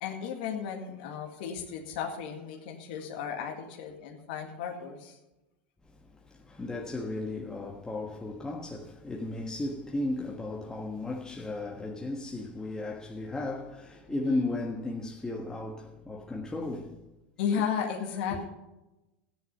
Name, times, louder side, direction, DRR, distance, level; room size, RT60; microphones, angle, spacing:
voice 1, 0.0-5.2 14.1-14.4 17.4-18.5, left 7 dB, 65° left, 2.0 m, -34 dB
voice 2, 6.3-17.0 17.5-17.6 18.3-18.5, left 2 dB, 15° left, 1.5 m, -35 dB
13.5 x 10.0 x 5.5 m
hypercardioid pair, 90°, 5 cm